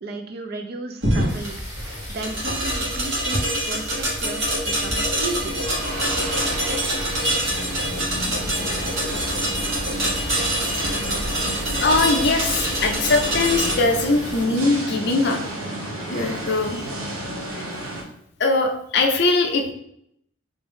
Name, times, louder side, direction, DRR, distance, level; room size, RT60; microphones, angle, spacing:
voice 1, 0.0-1.6 2.1-5.6, right 2 dB, 50° right, 5 dB, 0.4 m, -34 dB
sound 1, 1.0-13.7, right 1 dB, 65° right, 1.3 m, -25 dB
sound 2, 1.3-14.4, equal, 10° right, 1.3 m, -38 dB
sound 3, 4.0-18.0, right 1 dB, 85° right, 0.9 m, -32 dB
voice 2, 11.8-15.4 16.1-16.8 18.4-19.7, left 3 dB, 50° left, 4 dB, 0.5 m, -21 dB
3.5 x 2.6 x 3.5 m, 0.72 s
head